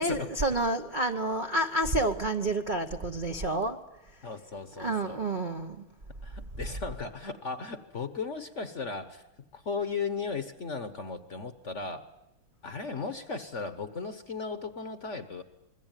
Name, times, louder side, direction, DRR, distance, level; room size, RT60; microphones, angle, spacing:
voice 1, 0.0-3.8 4.8-5.8, right 2 dB, 35° right, 0.7 m, -29 dB
voice 2, 4.2-5.2 6.2-9.2 9.5-12.1 12.6-15.4, left 4 dB, 40° left, 1.2 m, -36 dB
27.0 x 22.0 x 9.1 m
omnidirectional pair, 2.3 m